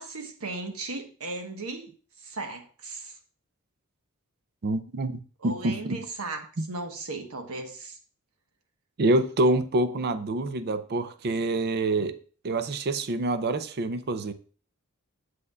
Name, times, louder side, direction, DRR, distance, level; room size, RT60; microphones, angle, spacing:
voice 1, 0.0-1.9 2.2-3.2 5.4-8.0, right 3 dB, 85° right, 1.2 m, -36 dB
voice 2, 4.6-6.0 6.6-6.7 9.0-12.2 12.4-14.3, right 2 dB, 50° right, 0.5 m, -26 dB
7.9 x 7.7 x 2.3 m
head